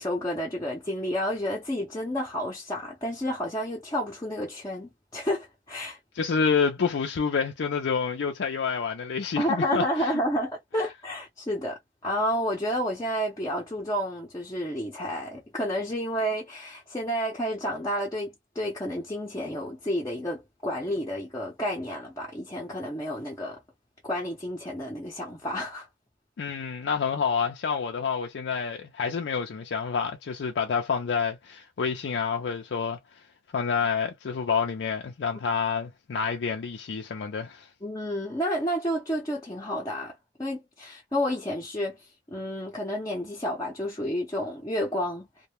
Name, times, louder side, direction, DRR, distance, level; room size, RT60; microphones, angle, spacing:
voice 1, 0.0-6.0 9.4-23.6 24.0-25.9 37.8-40.1 40.4-42.0 42.3-45.3, equal, 20° left, 0.6 m, -30 dB
voice 2, 6.1-10.1 26.4-33.0 33.5-37.7, left 6 dB, 90° left, 0.4 m, -28 dB
2.1 x 2.1 x 3.0 m
head